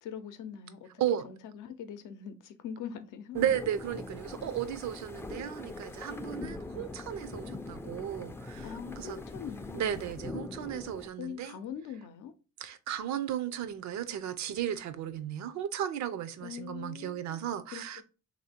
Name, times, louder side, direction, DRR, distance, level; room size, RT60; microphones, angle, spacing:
voice 1, 0.0-0.9 1.2-3.5 8.6-10.0 11.2-12.3 16.4-18.0, left 8 dB, 85° left, 0.6 m, -42 dB
sound 1, 3.3-11.1, left 2 dB, 10° left, 0.3 m, -42 dB
voice 2, 3.3-9.2 9.7-11.6 12.6-18.0, right 10 dB, 70° right, 0.5 m, -34 dB
3.0 x 2.7 x 4.2 m
cardioid pair, 90°, 30 cm